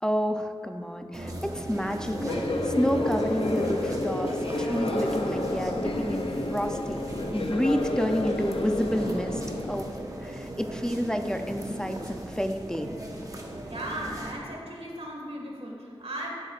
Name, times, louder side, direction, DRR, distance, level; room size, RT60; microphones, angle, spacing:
voice 1, 0.0-4.3 4.6-9.4 9.7-12.9, equal, 5° left, 5 dB, 0.5 m, -30 dB
sound 1, 1.1-14.3, right 1 dB, 35° right, 1.1 m, -37 dB
sound 2, 2.0-9.8, left 2 dB, 60° left, 0.7 m, -30 dB
voice 2, 13.7-16.3, right 1 dB, 75° right, -2 dB, 1.9 m, -36 dB
17.0 x 7.9 x 2.5 m, 2.2 s
wide cardioid pair, 75°, 10 cm